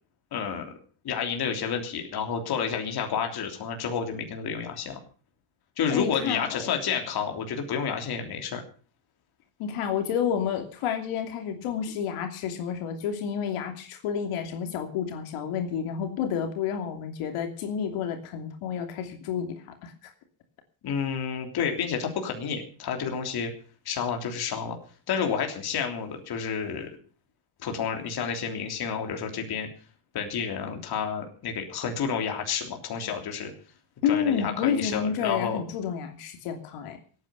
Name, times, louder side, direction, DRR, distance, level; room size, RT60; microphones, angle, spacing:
voice 1, 0.3-0.7 1.0-5.0 5.8-8.6 20.8-23.5 23.8-24.8 25.1-26.9 27.6-29.7 30.1-33.5 34.0-35.6, left 6 dB, 50° left, 4 dB, 3.4 m, -30 dB
voice 2, 5.9-6.7 9.6-20.1 34.0-37.0, left 8 dB, 90° left, 5 dB, 3.0 m, -30 dB
17.5 x 9.7 x 7.0 m, 0.41 s
cardioid pair, 150°, 49 cm